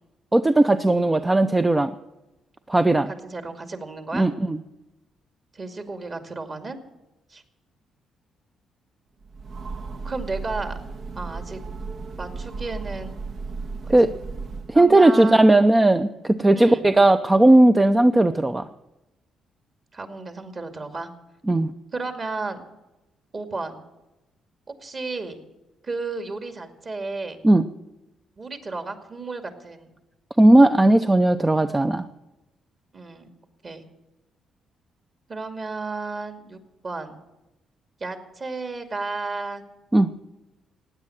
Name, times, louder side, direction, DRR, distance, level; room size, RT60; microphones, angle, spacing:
voice 1, 0.3-1.9 2.7-3.1 4.1-4.6 13.9-14.1 14.7-18.7 21.5-21.7 27.4-27.6 30.4-32.0 39.9-40.1, right 1 dB, 15° right, 9 dB, 0.6 m, -17 dB
voice 2, 3.2-4.3 5.5-6.8 7.3-7.4 10.0-10.7 11.2-11.6 12.2-13.1 14.7-15.7 16.5-16.8 19.9-21.1 21.9-22.6 23.3-23.8 24.8-25.4 25.8-27.4 28.4-29.9 32.9-33.3 33.6-33.8 35.3-37.2 38.0-39.6, right 3 dB, 35° right, 7 dB, 2.4 m, -33 dB
Train, 9.2-14.9, right 4 dB, 60° right, 1.4 m, -35 dB
16.5 x 9.6 x 9.1 m, 0.99 s
cardioid pair, 90°, 0 cm